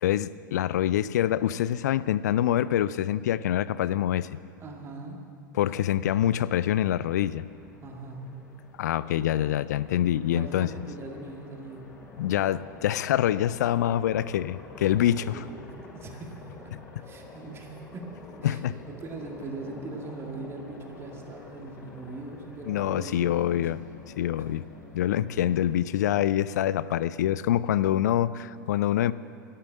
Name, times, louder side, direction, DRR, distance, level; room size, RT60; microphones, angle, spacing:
voice 1, 0.0-4.3 5.5-7.5 8.8-10.8 12.2-15.4 18.4-18.8 22.7-23.8 24.2-24.6 24.9-29.1, left 11 dB, 60° left, 17 dB, 0.4 m, -25 dB
voice 2, 4.6-5.2 7.8-8.3 10.4-11.9 15.3-18.1 18.4-23.7 24.4-24.5 27.8-27.9, right 3 dB, 25° right, 1 dB, 2.0 m, -41 dB
Aircraft, 6.0-25.7, left 3 dB, 30° left, 3.0 m, -48 dB
11.5 x 11.5 x 7.4 m, 2.6 s
figure-of-eight pair, 90°, 10 cm